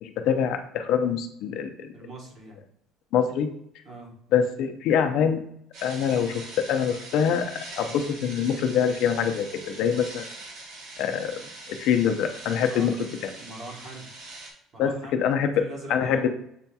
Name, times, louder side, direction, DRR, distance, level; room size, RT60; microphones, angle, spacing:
voice 1, 0.0-1.9 3.1-3.5 4.3-5.4 5.8-10.3 11.0-11.4 11.7-13.1 14.8-15.6 15.9-16.3, left 7 dB, 65° left, 6 dB, 0.5 m, -24 dB
voice 2, 1.9-2.6 3.8-4.1 12.6-14.1 14.7-16.3, right 1 dB, 40° right, -1 dB, 1.3 m, -42 dB
sound 1, 5.7-14.5, right 2 dB, 65° right, 1.0 m, -43 dB
7.4 x 2.8 x 2.3 m, 0.71 s
cardioid pair, 160°, 0 cm